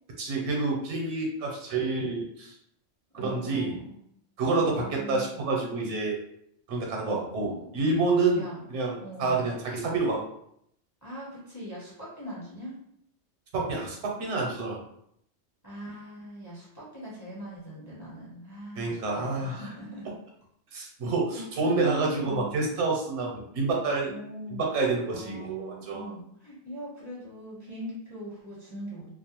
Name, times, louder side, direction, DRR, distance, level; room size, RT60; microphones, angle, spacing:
voice 1, 0.2-2.5 3.1-3.7 4.4-6.2 6.7-8.4 8.7-10.2 13.5-14.8 18.8-19.6 20.7-24.1 24.5-26.1, right 3 dB, 75° right, 0 dB, 0.9 m, -28 dB
voice 2, 3.1-4.0 4.5-5.6 7.1-7.9 8.3-8.6 9.0-9.5 11.0-12.8 15.6-20.1 21.3-22.5 24.1-29.1, right 1 dB, 20° left, -7 dB, 0.6 m, -41 dB
2.4 x 2.1 x 2.9 m, 0.72 s
omnidirectional pair, 1.2 m